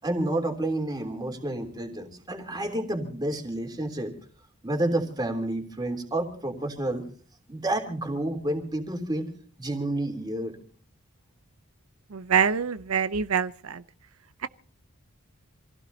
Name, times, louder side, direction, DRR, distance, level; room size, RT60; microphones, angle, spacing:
voice 1, 0.0-4.1 4.6-7.1 7.5-9.3 9.6-10.5, right 1 dB, 20° right, 3.3 m, -29 dB
voice 2, 12.1-13.8, right 7 dB, 75° right, 0.7 m, -25 dB
27.5 x 16.5 x 2.8 m
head